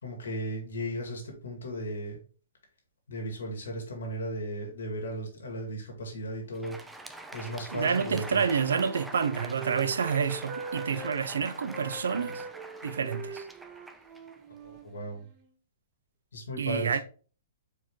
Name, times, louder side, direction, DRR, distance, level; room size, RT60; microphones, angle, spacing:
voice 1, 0.0-2.2 3.1-6.8 7.3-8.4 14.6-15.3 16.3-16.9, right 1 dB, 90° left, 1.8 m, -36 dB
Crowd, 6.4-14.9, right 2 dB, 5° right, 0.4 m, -45 dB
voice 2, 7.7-12.4 12.8-13.5 16.6-17.0, right 6 dB, 85° right, 0.4 m, -28 dB
Wind instrument woodwind instrument, 8.2-11.2 11.7-15.5, right 4 dB, 35° right, 0.8 m, -43 dB
4.5 x 3.1 x 3.6 m
hypercardioid pair, 140°, 0 cm